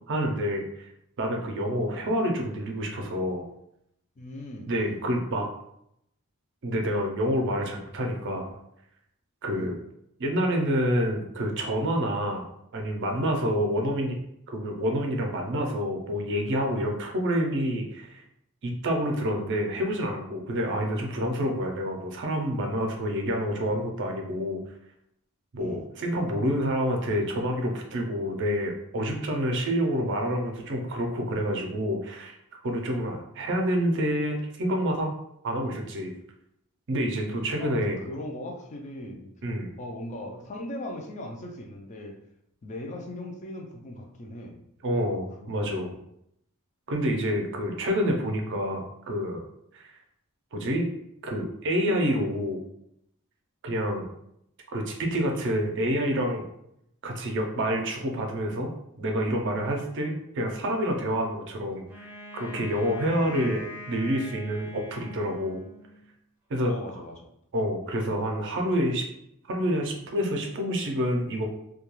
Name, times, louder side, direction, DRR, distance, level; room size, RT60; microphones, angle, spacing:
voice 1, 0.1-0.9 1.2-3.5 4.7-5.5 6.6-8.6 9.4-9.7 10.2-12.5 12.7-14.2 14.5-18.2 18.6-24.6 25.5-32.4 32.6-35.1 35.4-36.1 36.9-38.0 39.4-39.7 44.8-45.9 46.9-49.4 49.7-49.9 50.5-50.9 51.2-52.6 53.6-54.1 54.7-56.4 57.0-63.6 63.9-65.6 66.5-66.8 67.5-69.0 69.5-71.5, equal, 55° right, 2 dB, 0.5 m, -28 dB
voice 2, 4.2-5.0 9.5-9.8 13.4-13.6 19.3-19.5 20.8-21.0 25.6-25.8 37.6-39.3 39.8-42.2 42.6-44.6 45.0-46.0 63.0-63.2 66.6-67.3, left 1 dB, 30° left, 1 dB, 0.4 m, -39 dB
Wind instrument woodwind instrument, 61.9-66.1, left 1 dB, 10° right, 0.6 m, -43 dB
2.3 x 2.2 x 2.9 m, 0.75 s
head